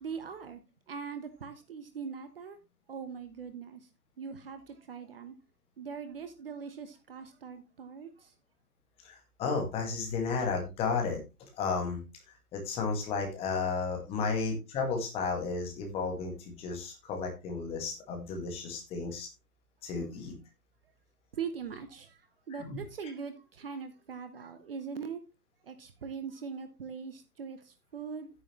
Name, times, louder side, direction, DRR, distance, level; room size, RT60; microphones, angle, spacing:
voice 1, 0.0-0.6 0.9-2.6 2.9-3.8 4.2-5.3 5.8-8.3 21.3-22.2 22.5-25.2 25.6-28.3, right 6 dB, 40° right, 1.1 m, -41 dB
voice 2, 9.0-12.0 12.5-19.3 19.8-20.3 22.6-22.8, left 4 dB, 10° left, 1.9 m, -33 dB
10.0 x 9.7 x 3.1 m
figure-of-eight pair, 135°, 46 cm